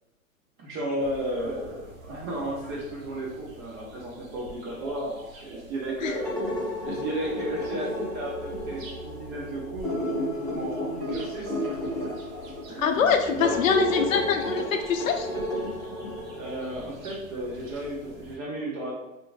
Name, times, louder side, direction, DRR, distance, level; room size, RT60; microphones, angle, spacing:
voice 1, 0.6-6.3 6.8-11.6 12.7-13.8 16.4-18.9, right 1 dB, 25° right, -3 dB, 0.5 m, -34 dB
sound 1, 1.0-18.4, right 1 dB, 65° right, 0.8 m, -45 dB
sound 2, 6.0-16.8, equal, 5° left, 1.1 m, -33 dB
voice 2, 12.8-15.3, left 6 dB, 70° left, 5 dB, 0.5 m, -24 dB
2.8 x 2.5 x 2.4 m, 0.90 s
hypercardioid pair, 115°, 43 cm